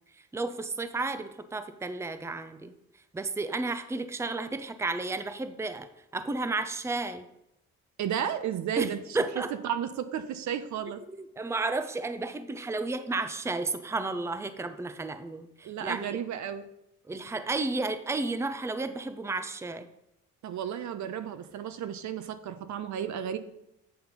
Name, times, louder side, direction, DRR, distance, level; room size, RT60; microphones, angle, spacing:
voice 1, 0.1-2.7 3.1-7.3 8.8-9.5 11.1-16.2 17.1-19.9, right 3 dB, 10° right, 10 dB, 0.5 m, -32 dB
voice 2, 8.0-9.0 9.6-11.0 15.6-16.7 20.4-23.4, right 9 dB, 70° right, 10 dB, 0.8 m, -33 dB
7.8 x 4.3 x 5.3 m, 0.83 s
cardioid pair, 90°, 30 cm